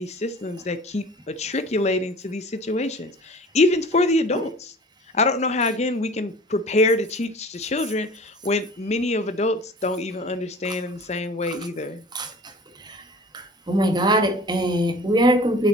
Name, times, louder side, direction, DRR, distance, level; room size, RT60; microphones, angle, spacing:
voice 1, 0.0-4.7 5.1-12.0, left 2 dB, 35° left, 0.6 m, -25 dB
voice 2, 12.1-13.0 13.3-15.7, right 1 dB, 20° right, 1.3 m, -22 dB
11.0 x 6.7 x 4.1 m
head